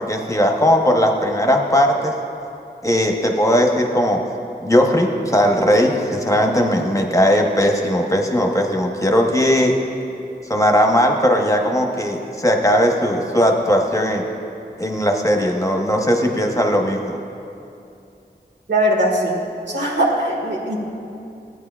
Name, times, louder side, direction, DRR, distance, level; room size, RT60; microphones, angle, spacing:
voice 1, 0.0-2.1 2.8-4.2 4.6-9.7 10.5-14.2 14.8-17.2, equal, 15° left, 1 dB, 0.9 m, -18 dB
voice 2, 18.7-20.8, right 1 dB, 75° right, -3 dB, 1.7 m, -20 dB
15.0 x 9.3 x 2.4 m, 2.7 s
wide cardioid pair, 45°, 18 cm